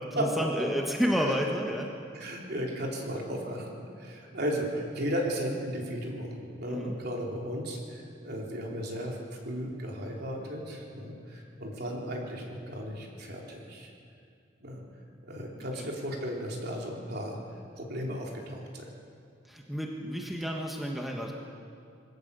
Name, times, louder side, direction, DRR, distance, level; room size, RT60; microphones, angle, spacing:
voice 1, 0.0-1.9 6.7-6.9 15.8-15.9 19.5-21.3, equal, ahead, 0 dB, 1.4 m, -30 dB
voice 2, 2.1-9.2 9.4-13.9 14.6-14.8 15.2-17.4 17.8-18.9, equal, 55° right, -1 dB, 3.6 m, -35 dB
22.5 x 17.5 x 6.9 m, 2.4 s
head